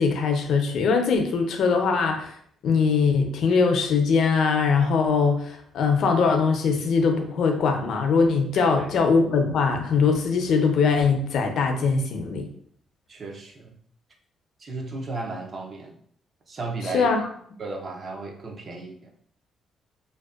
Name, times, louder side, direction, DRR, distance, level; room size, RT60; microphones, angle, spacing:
voice 1, 0.0-2.4 2.6-12.5 16.9-17.2, left 5 dB, 70° left, 4 dB, 0.4 m, -21 dB
voice 2, 8.5-8.9 13.1-13.8 14.6-16.0 16.5-17.3 17.6-19.1, right 3 dB, 45° right, 1 dB, 0.5 m, -35 dB
2.5 x 2.1 x 2.3 m, 0.63 s
cardioid pair, 90°, 0 cm